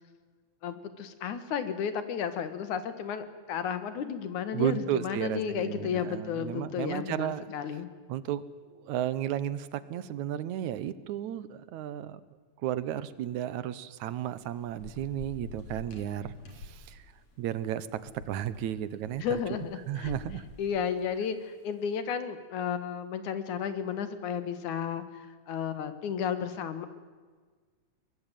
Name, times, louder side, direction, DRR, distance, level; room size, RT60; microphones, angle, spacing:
voice 1, 0.6-7.9 19.2-20.1 20.6-26.9, left 7 dB, 90° left, 11 dB, 3.1 m, -33 dB
voice 2, 4.5-7.4 8.1-8.4 8.7-12.2 12.6-16.3 16.6-17.0 17.4-19.4 19.9-20.4, right 11 dB, 80° right, 16 dB, 2.4 m, -33 dB
Thunder / Rain, 14.1-21.7, left 2 dB, 65° left, 4.9 m, -48 dB
23.5 x 20.5 x 9.2 m, 1.5 s
omnidirectional pair, 3.3 m